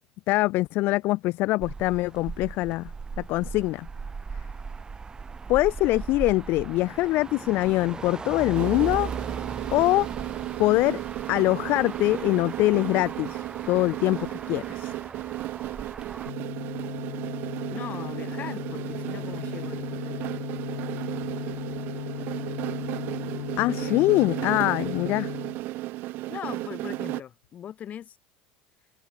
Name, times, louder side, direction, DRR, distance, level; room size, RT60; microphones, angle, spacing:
voice 1, 0.3-3.9 5.5-9.1 9.7-10.1 10.6-11.0 11.3-14.9 23.6-25.3, left 19 dB, 60° left, 0.3 m, -24 dB
Motor vehicle (road), 1.6-16.3, right 5 dB, 20° right, 0.6 m, -38 dB
sound 1, 8.5-27.2, right 18 dB, 60° right, 0.4 m, -34 dB
sound 2, 16.3-25.6, left 20 dB, 90° left, 0.7 m, -37 dB
voice 2, 17.7-20.4 23.6-24.0 26.3-28.2, left 9 dB, 40° left, 6.5 m, -40 dB
open air
supercardioid pair, 110°, 4 cm